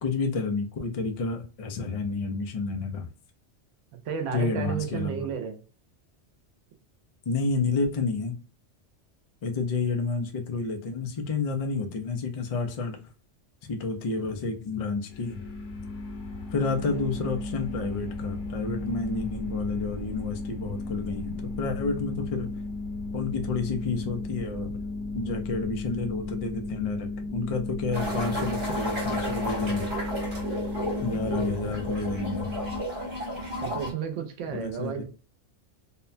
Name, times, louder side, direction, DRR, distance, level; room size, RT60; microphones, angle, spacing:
voice 1, 0.0-3.1 4.3-5.3 7.3-8.3 9.4-13.0 13.7-15.4 16.5-22.5 23.1-24.7 25.1-29.9 31.0-32.5 34.5-35.0, left 4 dB, 50° left, 0.4 m, -30 dB
voice 2, 4.0-5.6 16.9-17.1 33.6-35.0, right 8 dB, 90° right, 1.0 m, -32 dB
sound 1, 15.1-32.8, left 2 dB, 90° left, 1.0 m, -34 dB
sound 2, 27.9-33.9, equal, 60° right, 1.3 m, -33 dB
2.7 x 2.1 x 2.4 m
omnidirectional pair, 1.2 m